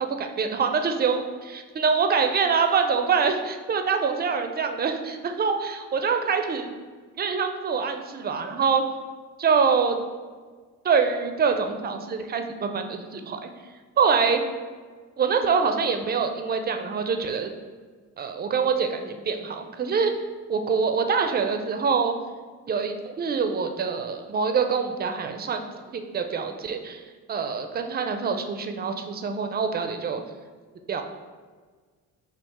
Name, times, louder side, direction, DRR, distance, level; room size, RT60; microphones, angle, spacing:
voice 1, 0.2-6.7 7.2-8.8 9.4-10.0 10.8-13.5 14.0-14.4 15.2-17.5 18.2-20.1 20.5-22.2 22.7-25.6 25.9-27.0 27.3-30.2 30.9-31.0, right 5 dB, 30° right, 6 dB, 0.4 m, -25 dB
3.6 x 2.5 x 4.1 m, 1.5 s
cardioid pair, 80°, 34 cm